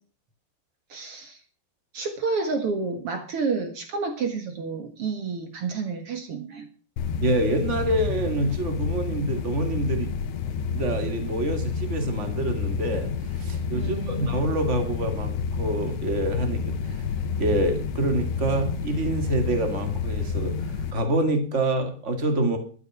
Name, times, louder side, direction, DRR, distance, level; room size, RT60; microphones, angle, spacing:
voice 1, 0.9-1.4 1.9-6.7 13.7-14.3, right 4 dB, 80° right, 7 dB, 1.2 m, -30 dB
sound 1, 7.0-20.9, left 5 dB, 70° left, 3.3 m, -29 dB
voice 2, 7.2-10.1 10.7-17.0 17.4-20.5 20.9-22.6, right 1 dB, 40° right, 6 dB, 1.0 m, -26 dB
12.5 x 9.5 x 6.1 m, 0.41 s
omnidirectional pair, 5.0 m